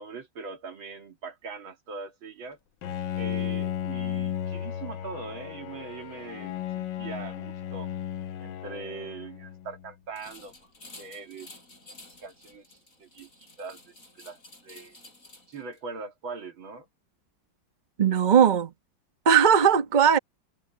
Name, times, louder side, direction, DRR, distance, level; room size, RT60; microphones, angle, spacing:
voice 1, 0.0-2.6 3.2-7.9 8.4-10.7 11.0-11.5 12.0-14.4 14.6-15.0 15.5-16.9, right 4 dB, 85° right, 3.2 m, -41 dB
Bowed string instrument, 2.8-9.9, left 10 dB, 70° left, 1.5 m, -34 dB
sound 1, 10.2-15.8, left 2 dB, 40° left, 8.0 m, -51 dB
voice 2, 18.0-18.7 19.2-20.2, right 8 dB, 30° right, 1.0 m, -19 dB
omnidirectional pair, 2.1 m